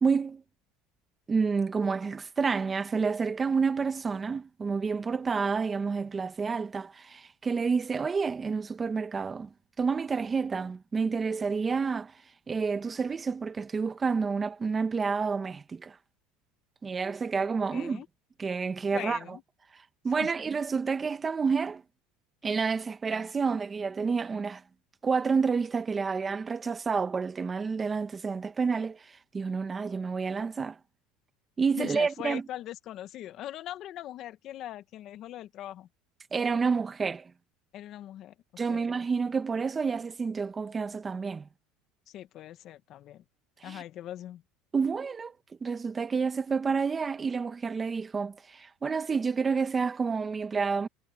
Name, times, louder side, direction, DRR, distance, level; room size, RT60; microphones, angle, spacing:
voice 1, 0.0-0.4 1.3-9.5 9.8-12.1 12.5-16.0 16.8-18.0 18.4-19.4 20.0-21.8 22.4-24.6 25.0-30.8 31.6-32.4 36.3-37.3 38.6-41.5 43.6-43.8 44.7-45.3 45.6-50.9, right 5 dB, 20° right, 1.6 m, -29 dB
voice 2, 17.7-18.1 18.9-19.4 20.2-20.3 31.7-35.9 37.7-38.3 38.7-38.8 42.1-43.2 43.6-44.4, left 13 dB, 50° left, 1.6 m, -41 dB
supercardioid pair, 120°, 0 cm